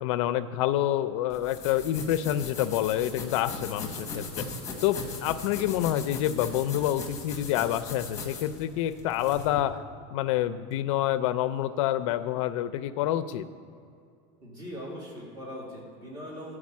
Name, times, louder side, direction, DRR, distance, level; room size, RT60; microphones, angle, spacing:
voice 1, 0.0-4.4 4.8-9.8 10.1-13.5, left 12 dB, 80° left, 13 dB, 0.4 m, -27 dB
sound 1, 1.3-9.6, left 3 dB, 20° left, 1.2 m, -39 dB
voice 2, 14.4-16.6, equal, 25° right, -4 dB, 2.0 m, -40 dB
10.5 x 4.8 x 7.2 m, 2.4 s
cardioid pair, 165°, 16 cm